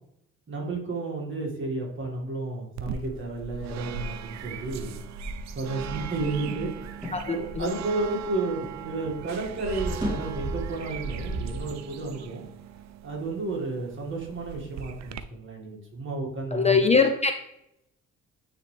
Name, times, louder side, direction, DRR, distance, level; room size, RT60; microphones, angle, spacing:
voice 1, 0.5-4.9 5.5-6.7 7.3-12.4 13.0-16.8, right 3 dB, 40° right, -1 dB, 1.9 m, -32 dB
sound 1, 2.8-15.2, right 8 dB, 65° right, 0.5 m, -40 dB
sound 2, 5.1-8.8 9.0-11.6, right 1 dB, 15° right, 2.3 m, -36 dB
voice 2, 7.1-7.7 16.5-17.3, left 5 dB, 20° left, 6 dB, 0.4 m, -22 dB
9.5 x 3.2 x 3.3 m, 0.80 s
cardioid pair, 90°, 30 cm